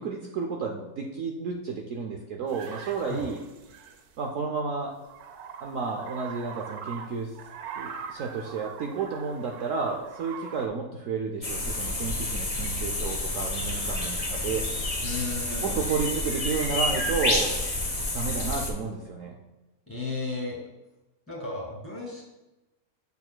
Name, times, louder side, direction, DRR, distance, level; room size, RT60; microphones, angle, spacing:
voice 1, 0.0-3.4 4.2-4.9 5.6-7.3 7.8-14.6 15.6-17.6 18.1-19.4, right 5 dB, 65° right, 1 dB, 0.9 m, -31 dB
sound 1, 2.5-4.2 4.9-10.7, right 7 dB, 80° right, 1.2 m, -42 dB
sound 2, 11.4-18.7, left 2 dB, 30° left, 0.8 m, -29 dB
voice 2, 15.0-15.8 19.9-20.6 21.3-22.2, left 3 dB, 10° left, -4 dB, 1.9 m, -34 dB
8.3 x 6.8 x 2.2 m, 1.0 s
omnidirectional pair, 1.6 m